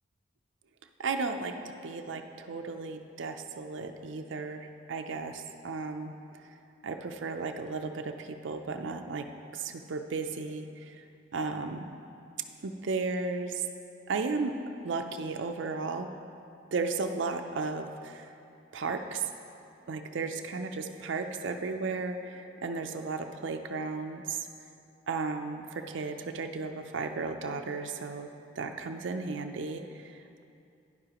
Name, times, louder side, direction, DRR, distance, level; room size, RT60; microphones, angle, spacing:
voice 1, 1.0-6.1 6.4-6.6 6.8-11.0 11.3-11.9 12.6-13.7 14.1-16.1 16.7-18.3 18.7-19.3 19.9-24.5 25.1-28.3 28.6-30.4, right 4 dB, 75° right, 5 dB, 0.5 m, -34 dB
11.5 x 9.7 x 2.9 m, 2.6 s
head